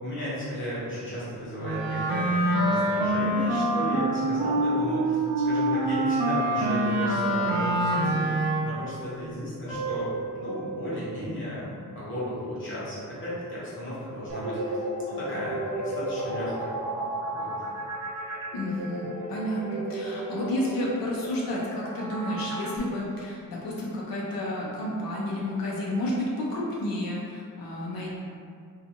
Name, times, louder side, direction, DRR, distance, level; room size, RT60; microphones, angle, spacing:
voice 1, 0.0-16.7 17.3-17.5, equal, 35° left, -9 dB, 0.9 m, -35 dB
Wind instrument woodwind instrument, 1.6-8.9, right 1 dB, 90° right, 0.5 m, -25 dB
sound 1, 9.7-12.8, right 5 dB, 5° left, 0.5 m, -38 dB
sound 2, 14.3-22.8, right 1 dB, 45° right, 0.7 m, -34 dB
voice 2, 18.5-28.1, left 1 dB, 85° left, -5 dB, 0.6 m, -31 dB
2.5 x 2.3 x 2.7 m, 2.3 s
wide cardioid pair, 170°, 34 cm